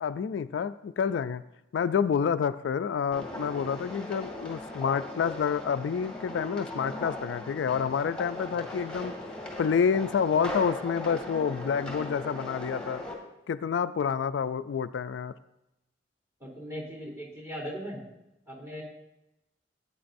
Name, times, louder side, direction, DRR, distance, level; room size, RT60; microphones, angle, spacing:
voice 1, 0.0-1.4 1.7-9.1 9.6-13.0 13.5-15.3, left 6 dB, 70° left, 13 dB, 0.3 m, -28 dB
sound 1, 3.1-13.1, left 1 dB, 5° left, 2.4 m, -39 dB
voice 2, 16.4-18.0 18.5-18.8, equal, 15° right, -2 dB, 3.0 m, -39 dB
15.5 x 8.9 x 2.6 m, 0.91 s
head